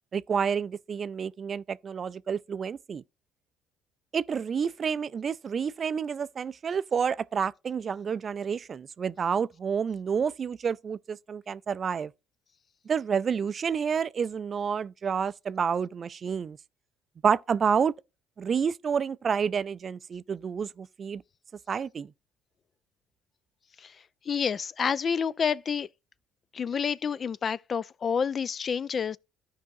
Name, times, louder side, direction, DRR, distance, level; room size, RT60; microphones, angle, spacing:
voice 1, 0.1-3.0 4.1-12.1 12.9-16.6 17.2-17.9 18.4-21.2 21.7-22.1, right 6 dB, 45° right, 0.3 m, -29 dB
voice 2, 24.3-25.9 26.5-29.2, left 6 dB, 45° left, 0.3 m, -29 dB
14.0 x 4.8 x 2.7 m
hypercardioid pair, 60°, 0 cm